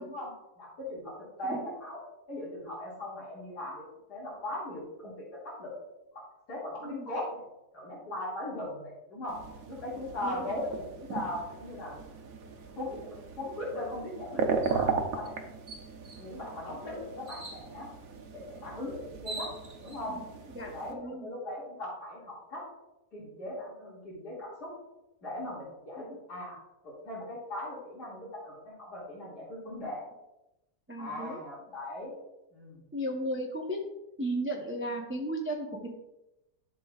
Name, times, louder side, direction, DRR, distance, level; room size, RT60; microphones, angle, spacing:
voice 1, 0.0-2.0 2.3-5.7 6.1-7.4 7.7-9.4 9.7-12.0 12.7-15.3 16.2-17.9 18.3-19.5 19.8-20.2 20.6-22.6 23.1-24.7 25.2-26.6 26.8-30.0 31.0-32.1 32.5-32.9, left 1 dB, 80° left, -7 dB, 2.9 m, -39 dB
sound 1, 9.3-20.9, right 5 dB, 65° right, 1.2 m, -37 dB
sound 2, 14.6-14.8 15.2-15.3 15.7-16.3 17.3-17.6 18.7-18.8 19.1-20.0, right 2 dB, 35° right, 1.7 m, -42 dB
voice 2, 20.5-21.3 30.9-31.4 32.9-33.8 34.2-35.9, right 1 dB, 15° right, 1 dB, 0.5 m, -35 dB
11.0 x 6.5 x 2.4 m, 0.93 s
omnidirectional pair, 1.7 m